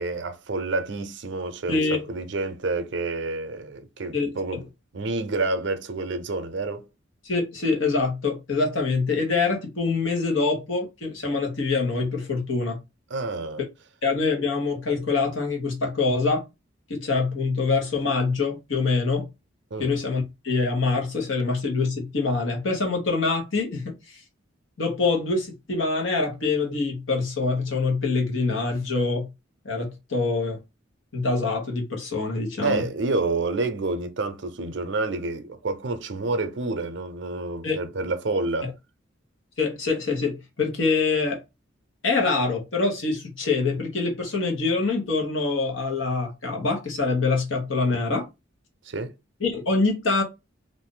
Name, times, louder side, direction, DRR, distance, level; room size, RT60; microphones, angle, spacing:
voice 1, 0.0-4.6 4.9-6.9 13.1-13.6 19.7-19.9 32.6-38.7 48.8-49.1, right 3 dB, 65° right, 0.6 m, -28 dB
voice 2, 1.7-2.0 4.1-4.6 7.2-12.8 14.0-16.4 16.9-19.3 19.8-24.2 24.8-29.3 29.6-30.6 31.1-32.8 37.6-37.8 38.6-38.7 39.6-41.4 42.0-48.3 49.4-50.2, left 3 dB, 80° left, 1.1 m, -25 dB
2.5 x 2.5 x 3.7 m
head